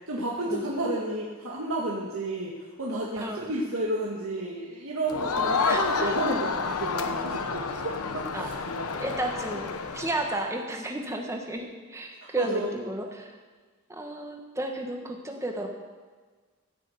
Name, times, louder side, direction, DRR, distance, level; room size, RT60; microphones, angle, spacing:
voice 1, 0.1-8.5 12.2-12.7, right 1 dB, 65° right, -3 dB, 1.7 m, -31 dB
Crowd, 5.1-10.4, left 4 dB, 80° left, 1.0 m, -29 dB
voice 2, 5.6-6.1 8.3-8.5 8.9-9.7 9.9-13.3 13.9-15.7, right 1 dB, 15° right, 2 dB, 1.4 m, -33 dB
15.5 x 6.5 x 8.0 m, 1.4 s
head